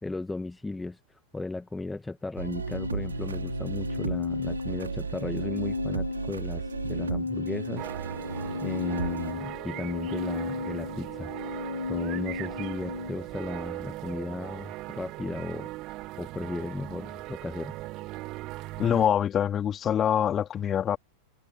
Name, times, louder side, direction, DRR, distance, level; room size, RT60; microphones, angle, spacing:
voice 1, 0.0-8.3 8.6-11.3 11.9-15.7 16.2-17.8, left 2 dB, 10° left, 1.9 m, -36 dB
Organ, 2.4-13.2, left 4 dB, 75° left, 3.7 m, -35 dB
sound 1, 2.4-9.3, right 6 dB, 70° right, 3.6 m, -35 dB
sound 2, 7.8-19.1, right 19 dB, 40° right, 2.6 m, -39 dB
voice 2, 18.8-21.0, left 9 dB, 25° left, 2.8 m, -25 dB
figure-of-eight pair, 90°, 0 cm